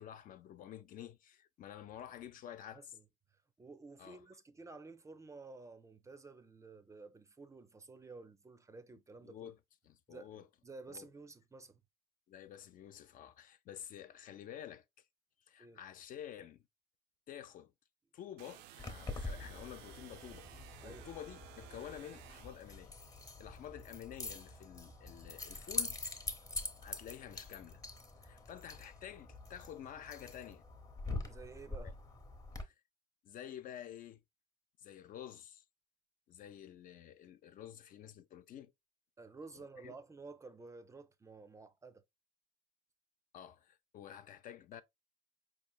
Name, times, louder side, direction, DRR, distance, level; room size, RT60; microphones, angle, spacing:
voice 1, 0.0-2.9 4.0-4.2 9.2-9.6 9.8-10.5 10.9-11.1 12.3-15.0 15.5-16.6 17.3-17.7 18.1-20.5 20.8-22.9 23.4-26.0 26.4-27.8 28.2-30.6 31.7-31.9 32.6-32.7 33.2-34.2 34.8-35.6 36.3-38.7 39.6-39.9 43.3-44.8, left 10 dB, 55° left, 0.4 m, -50 dB
voice 2, 2.5-3.0 3.6-9.5 10.1-11.8 15.6-15.8 20.8-21.1 31.2-31.9 39.2-42.0, right 3 dB, 20° right, 0.4 m, -53 dB
sound 1, 18.4-22.8, right 12 dB, 85° right, 0.4 m, -56 dB
Keys jangling, 18.8-32.6, left 2 dB, 20° left, 0.8 m, -45 dB
4.7 x 3.1 x 2.2 m
cardioid pair, 110°, 17 cm